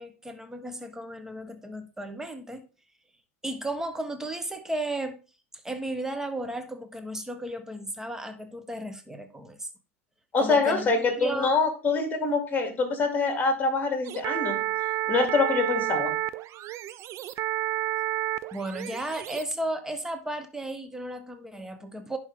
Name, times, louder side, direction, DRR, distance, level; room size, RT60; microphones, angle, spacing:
voice 1, 0.0-2.7 3.4-5.2 5.6-9.7 10.4-11.5 18.5-22.2, right 1 dB, 5° right, 1.2 m, -34 dB
voice 2, 10.3-14.7 15.1-16.2, left 4 dB, 25° left, 2.6 m, -25 dB
sound 1, 14.0-19.4, right 14 dB, 40° right, 0.5 m, -30 dB
10.5 x 4.6 x 3.7 m
hypercardioid pair, 95°, 8 cm